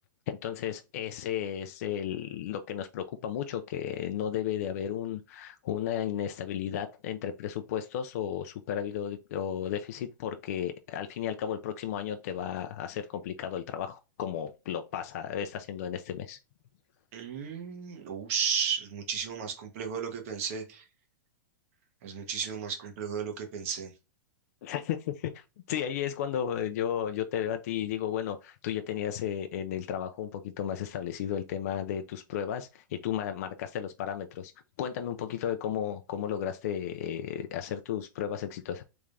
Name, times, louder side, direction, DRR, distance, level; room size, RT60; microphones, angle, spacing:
voice 1, 0.3-16.4 24.6-34.5 34.8-38.8, left 9 dB, 50° left, 0.4 m, -34 dB
voice 2, 17.1-20.8 22.0-23.9, right 6 dB, 45° right, 0.9 m, -34 dB
3.4 x 3.2 x 2.5 m
supercardioid pair, 170°, 10 cm